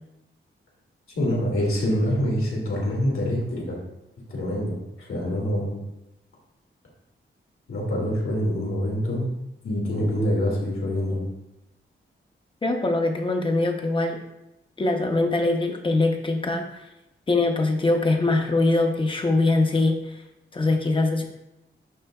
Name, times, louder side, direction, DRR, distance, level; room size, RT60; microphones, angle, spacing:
voice 1, 1.1-3.8 4.3-5.8 7.7-9.3 9.6-11.2, equal, 85° left, -3 dB, 2.2 m, -25 dB
voice 2, 12.6-14.2 14.8-16.8 17.3-20.2 20.5-21.2, left 2 dB, 25° left, 4 dB, 0.6 m, -22 dB
11.0 x 3.8 x 2.3 m, 0.91 s
wide cardioid pair, 175°, 21 cm